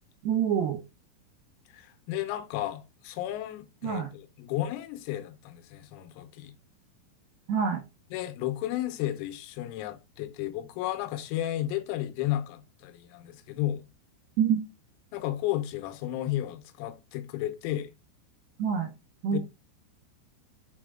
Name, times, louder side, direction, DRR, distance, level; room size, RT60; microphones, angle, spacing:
voice 1, 0.2-0.8 3.8-4.1 7.5-7.8 14.4-14.6 18.6-18.9 19.2-19.4, right 7 dB, 80° right, 2.4 m, -26 dB
voice 2, 1.7-6.5 8.1-13.8 15.1-17.9 19.3-19.4, left 13 dB, 85° left, 3.7 m, -33 dB
7.6 x 5.8 x 3.6 m
omnidirectional pair, 6.0 m